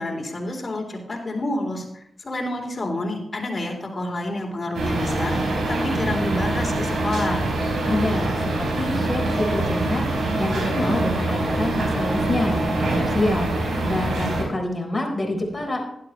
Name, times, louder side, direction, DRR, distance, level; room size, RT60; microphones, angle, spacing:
voice 1, 0.0-5.4 5.7-7.5, left 1 dB, 40° left, 0 dB, 3.6 m, -29 dB
sound 1, 4.7-14.4, right 2 dB, 85° right, 4.2 m, -24 dB
voice 2, 7.8-10.1 10.4-13.5 13.8-15.9, left 2 dB, 25° left, 1 dB, 4.0 m, -26 dB
12.0 x 11.5 x 3.2 m, 0.76 s
cardioid pair, 55°, 0 cm